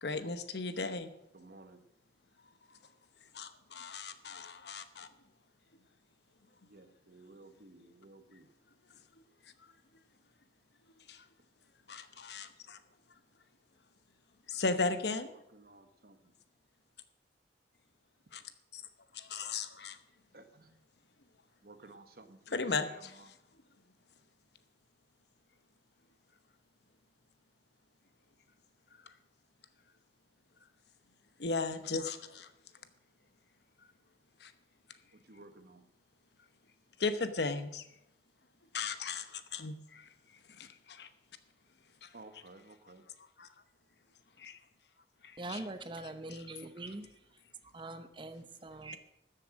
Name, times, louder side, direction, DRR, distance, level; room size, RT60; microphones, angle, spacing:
voice 1, 0.0-1.1 3.3-5.1 11.1-11.2 11.9-12.8 14.5-15.3 18.3-18.4 18.7-18.8 19.1-20.0 22.5-22.9 31.4-32.5 34.4-34.5 37.0-37.9 38.7-40.1 40.6-41.1 42.0-42.1 43.4-43.5 44.4-44.6 45.2-45.6 46.3-46.5, left 3 dB, 65° left, 1.0 m, -36 dB
voice 2, 1.3-1.8 6.6-8.5 15.2-16.3 20.3-20.8 21.6-23.3 35.1-35.9 42.1-43.0 44.3-44.4, right 2 dB, 55° right, 1.2 m, -55 dB
voice 3, 45.4-47.1 47.7-49.0, right 2 dB, 25° right, 0.7 m, -43 dB
13.5 x 7.6 x 6.3 m
head